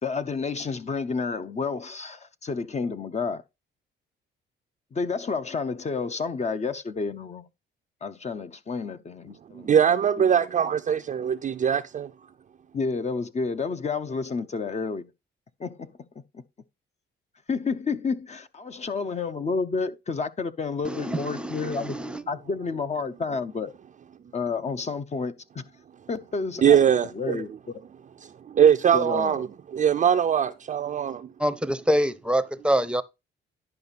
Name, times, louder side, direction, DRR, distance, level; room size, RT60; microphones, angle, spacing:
voice 1, 0.0-3.4 4.9-7.4 8.0-10.3 12.7-15.0 15.6-16.0 16.3-16.4 17.5-22.0 22.3-23.7 24.3-25.6 26.1-26.8 27.1-27.8 28.9-29.4, left 4 dB, 35° left, 0.7 m, -30 dB
voice 2, 9.5-12.1 26.6-27.4 28.5-29.5 29.7-31.3, right 8 dB, 40° right, 0.5 m, -21 dB
voice 3, 20.8-22.2 31.4-33.0, equal, 5° right, 0.7 m, -26 dB
11.0 x 5.0 x 4.1 m
cardioid pair, 90°, 20 cm